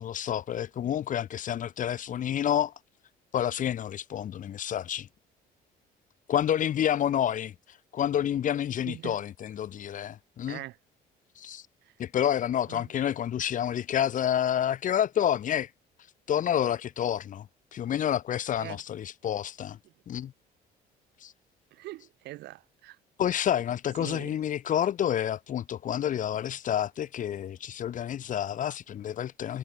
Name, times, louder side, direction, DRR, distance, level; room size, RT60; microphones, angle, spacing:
voice 1, 0.0-2.7 3.3-5.1 6.3-7.5 7.9-10.6 11.4-11.6 12.0-15.7 16.3-17.5 17.7-19.8 20.1-20.3 21.2-21.3 23.2-29.6, left 10 dB, 50° left, 1.2 m, -29 dB
voice 2, 8.8-9.2 10.5-10.8 11.8-11.9 12.7-12.9 18.6-18.8 19.8-19.9 21.7-23.0 24.0-24.4, right 17 dB, 80° right, 4.8 m, -42 dB
cardioid pair, 110°, 17 cm